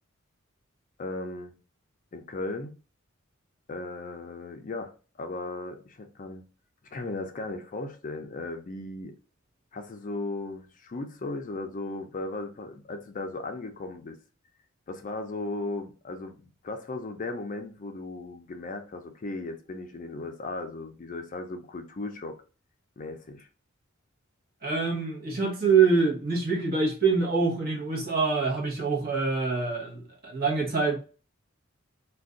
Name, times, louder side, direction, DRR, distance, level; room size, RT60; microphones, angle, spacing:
voice 1, 1.0-1.5 2.1-2.8 3.7-4.9 5.2-6.4 6.9-9.1 9.7-14.2 14.9-16.4 16.6-22.4 23.0-23.5, left 2 dB, 40° left, 0.4 m, -36 dB
voice 2, 24.6-31.0, right 4 dB, 50° right, 1.0 m, -25 dB
2.5 x 2.2 x 3.6 m
head